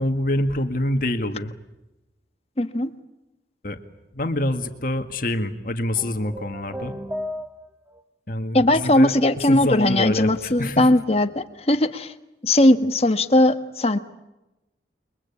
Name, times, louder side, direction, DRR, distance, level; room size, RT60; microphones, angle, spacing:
voice 1, 0.0-1.5 3.6-3.8 4.1-7.0 8.3-9.1 9.5-10.9, left 1 dB, 50° left, 7 dB, 1.9 m, -26 dB
voice 2, 2.6-2.9 8.5-12.1 12.4-14.0, left 1 dB, 35° left, 9 dB, 1.4 m, -19 dB
sound 1, 5.9-8.0, left 1 dB, 10° right, 1.0 m, -34 dB
29.0 x 23.0 x 8.6 m, 0.97 s
head